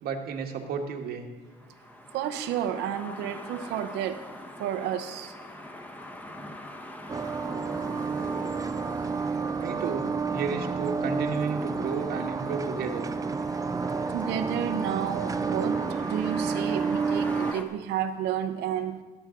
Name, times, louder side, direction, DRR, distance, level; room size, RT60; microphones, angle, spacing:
voice 1, 0.0-1.2 9.6-13.1, right 5 dB, 70° right, 3 dB, 1.3 m, -32 dB
sound 1, 1.5-17.6, left 1 dB, 10° left, 1.2 m, -42 dB
voice 2, 2.1-4.2 4.6-5.4 14.1-19.0, right 9 dB, 90° right, 8 dB, 0.9 m, -31 dB
sound 2, 7.1-17.5, right 5 dB, 20° right, 0.5 m, -30 dB
19.0 x 8.1 x 3.8 m, 1.3 s
cardioid pair, 110°, 17 cm